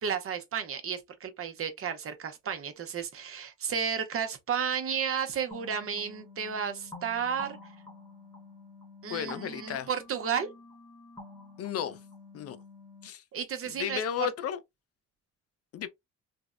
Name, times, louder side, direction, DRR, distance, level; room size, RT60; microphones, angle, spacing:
voice 1, 0.0-7.6 9.0-10.5 13.3-14.3, right 7 dB, 45° right, 0.7 m, -33 dB
sound 1, 5.5-13.1, left 2 dB, 15° left, 0.9 m, -49 dB
voice 2, 9.1-9.9 11.6-12.0 12.3-12.6 13.0-13.2 13.7-14.6 15.7-15.9, left 9 dB, 50° left, 0.5 m, -33 dB
3.4 x 2.0 x 2.4 m
cardioid pair, 90°, 30 cm